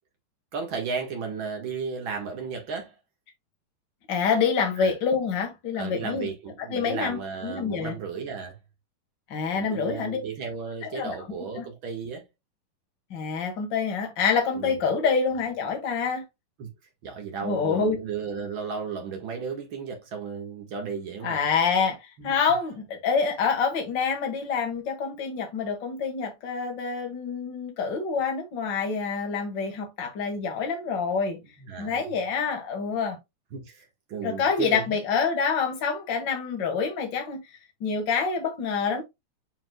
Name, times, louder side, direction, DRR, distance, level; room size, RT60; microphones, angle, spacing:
voice 1, 0.5-2.9 4.8-4.9 5.7-8.5 9.5-12.2 14.5-14.9 16.6-16.7 17.0-21.4 22.2-22.4 31.6-32.1 33.5-35.0, right 5 dB, 60° right, 1.3 m, -34 dB
voice 2, 4.1-6.3 6.7-8.0 9.3-10.2 10.8-11.1 11.6-11.7 13.1-16.2 17.4-18.0 21.2-31.4 31.8-33.2 34.2-37.4 37.8-39.0, left 5 dB, 40° left, 1.8 m, -27 dB
8.8 x 4.7 x 2.3 m
omnidirectional pair, 4.8 m